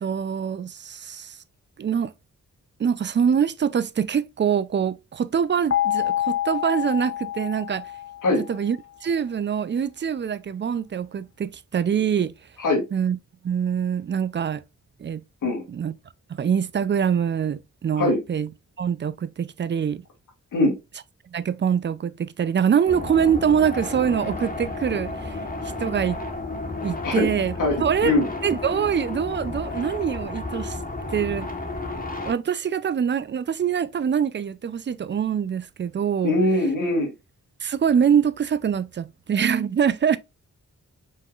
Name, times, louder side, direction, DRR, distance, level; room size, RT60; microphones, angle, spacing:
voice 1, 0.0-1.4 1.8-2.1 2.8-7.9 8.5-12.3 12.9-13.2 13.4-14.6 15.0-15.2 15.7-15.9 16.3-18.5 18.8-20.0 21.3-25.4 25.8-26.2 26.8-27.5 27.8-28.2 28.4-30.8 31.1-31.5 32.2-36.4 37.6-40.2, right 7 dB, 40° right, 0.4 m, -24 dB
sound 1, 5.7-8.7, left 11 dB, 50° left, 0.8 m, -27 dB
sound 2, 22.9-32.3, left 2 dB, 30° left, 1.4 m, -32 dB
voice 2, 36.2-37.1, left 2 dB, 90° left, 2.1 m, -21 dB
5.3 x 3.7 x 2.4 m
cardioid pair, 70°, 31 cm